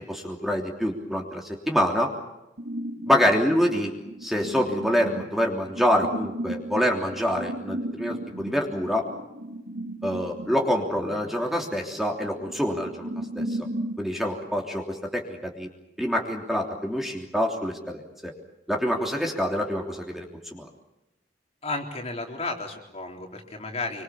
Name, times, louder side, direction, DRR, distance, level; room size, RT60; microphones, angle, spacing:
voice 1, 0.1-2.1 3.1-3.9 4.2-9.1 10.0-13.1 13.3-13.6 14.0-15.7 16.0-18.3 18.7-20.7, equal, ahead, 0 dB, 3.2 m, -26 dB
sound 1, 2.6-14.0, right 1 dB, 65° right, 4.1 m, -36 dB
voice 2, 21.6-24.0, left 3 dB, 35° left, 2 dB, 3.9 m, -33 dB
27.0 x 25.0 x 7.2 m, 0.95 s
head